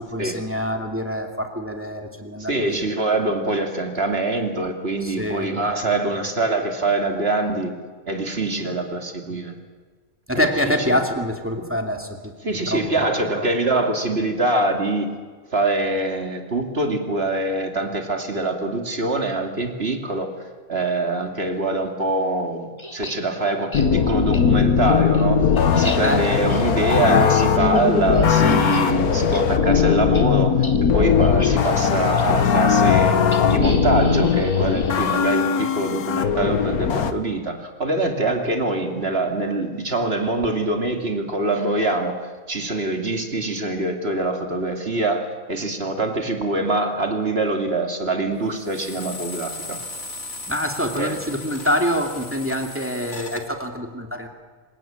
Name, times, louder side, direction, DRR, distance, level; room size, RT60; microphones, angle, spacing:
voice 1, 0.0-2.9 5.0-5.5 5.8-5.9 9.3-9.4 10.3-12.3 12.7-13.4 26.0-26.5 26.7-26.9 50.5-54.3, equal, 10° right, 3 dB, 2.5 m, -26 dB
voice 2, 2.4-7.7 8.1-9.5 10.3-11.0 12.4-15.1 15.5-20.3 20.7-25.4 25.8-30.6 30.9-33.2 33.5-42.2 42.5-49.8 50.9-51.2, right 2 dB, 45° right, 4 dB, 2.9 m, -24 dB
sound 1, 22.8-23.2 23.7-23.9 24.3-24.4 24.8-28.9 29.2-29.4 29.7-29.8 30.1-30.2 30.6-30.8 31.2-31.5 32.2-32.3 33.3-35.7, left 1 dB, 20° left, 2.5 m, -37 dB
sound 2, 23.7-37.1, left 6 dB, 90° left, 1.7 m, -19 dB
sound 3, 48.6-53.4, left 2 dB, 50° left, 2.6 m, -36 dB
27.0 x 17.5 x 9.0 m, 1.5 s
omnidirectional pair, 1.5 m